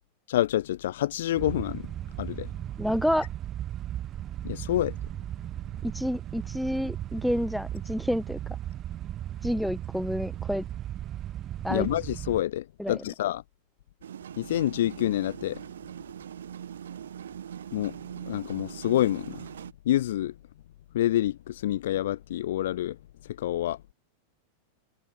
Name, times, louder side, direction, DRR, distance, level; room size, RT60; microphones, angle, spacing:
voice 1, 0.3-1.9 2.2-2.5 4.4-5.0 11.7-13.4 14.4-15.6 17.7-19.4 19.9-20.3 20.9-23.0 23.3-23.8, left 13 dB, 60° left, 0.6 m, -27 dB
sound 1, 1.3-12.4, right 12 dB, 30° right, 1.3 m, -36 dB
voice 2, 2.8-3.3 5.8-8.4 9.4-10.6 11.6-11.9 12.8-13.0, equal, ahead, 1.4 m, -29 dB
sound 2, 14.0-19.7, right 9 dB, 65° right, 5.7 m, -41 dB
figure-of-eight pair, 90°, 0 cm